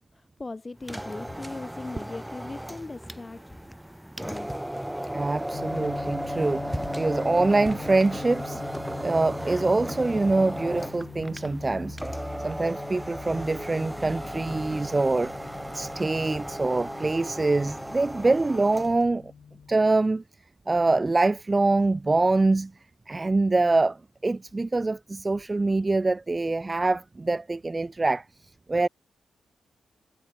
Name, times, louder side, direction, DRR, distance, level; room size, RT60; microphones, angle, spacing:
voice 1, 0.1-3.4 3.8-4.6, left 3 dB, 25° left, 1.2 m, -39 dB
sound 1, 0.8-19.0, right 1 dB, 5° right, 1.1 m, -35 dB
voice 2, 5.1-8.6 9.0-12.0 12.4-15.3 15.7-19.3 19.7-20.2 20.7-22.7 23.1-24.0 24.2-28.2 28.7-28.9, right 3 dB, 25° right, 0.4 m, -24 dB
sound 2, 5.5-19.9, left 7 dB, 70° left, 0.8 m, -44 dB
cardioid pair, 90°, 0 cm